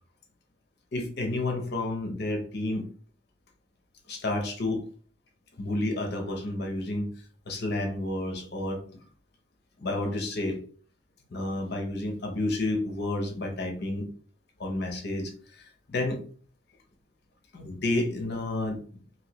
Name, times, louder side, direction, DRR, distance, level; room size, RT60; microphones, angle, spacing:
voice 1, 0.9-2.8 4.1-4.8 5.6-7.1 7.5-8.8 9.8-10.6 11.3-14.1 14.6-16.2 17.5-18.8, left 2 dB, 60° left, 3 dB, 0.7 m, -30 dB
3.1 x 2.6 x 2.9 m, 0.43 s
head